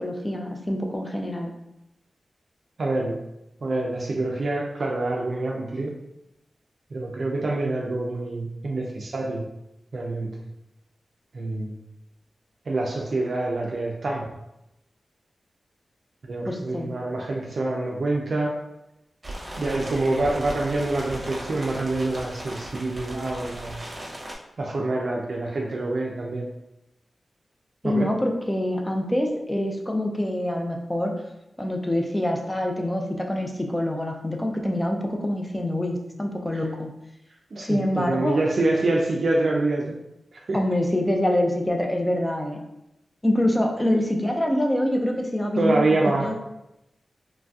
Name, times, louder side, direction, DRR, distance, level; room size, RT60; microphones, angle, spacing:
voice 1, 0.0-1.5 16.5-17.0 27.8-31.1 31.6-36.9 37.6-38.4 40.5-42.6 43.2-45.8 46.2-46.4, left 1 dB, 15° left, 2 dB, 0.4 m, -25 dB
voice 2, 2.8-3.2 3.6-5.9 6.9-9.4 9.9-10.4 11.3-11.7 12.7-14.3 16.3-18.6 19.6-23.8 24.6-26.5 27.8-28.1 36.5-36.6 37.5-39.9 40.3-40.6 45.6-46.4, right 2 dB, 65° right, -2 dB, 0.4 m, -26 dB
sound 1, 19.2-24.4, right 1 dB, 40° right, 0.8 m, -37 dB
3.1 x 2.5 x 2.3 m, 0.88 s
cardioid pair, 50°, 0 cm